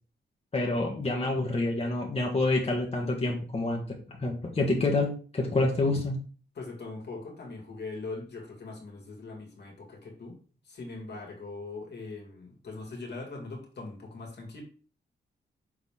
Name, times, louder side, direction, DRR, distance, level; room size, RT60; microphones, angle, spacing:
voice 1, 0.5-3.8 4.1-6.2, left 2 dB, 30° left, 0 dB, 1.5 m, -27 dB
voice 2, 6.5-10.4 10.6-14.6, left 3 dB, 65° left, 0 dB, 2.1 m, -41 dB
6.2 x 4.1 x 3.7 m, 0.40 s
cardioid pair, 95°, 19 cm